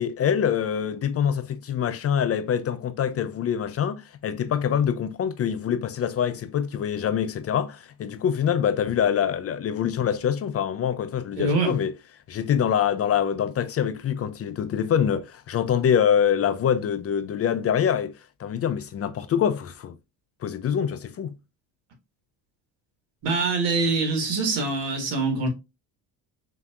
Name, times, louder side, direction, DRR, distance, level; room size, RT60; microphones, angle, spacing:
voice 1, 0.0-11.9 12.3-18.1 18.4-20.0 20.4-21.4, left 8 dB, 35° left, 0.5 m, -25 dB
voice 2, 11.4-11.7 23.2-25.5, right 3 dB, 70° right, 1.8 m, -24 dB
5.7 x 2.8 x 2.4 m
supercardioid pair, 90°, 41 cm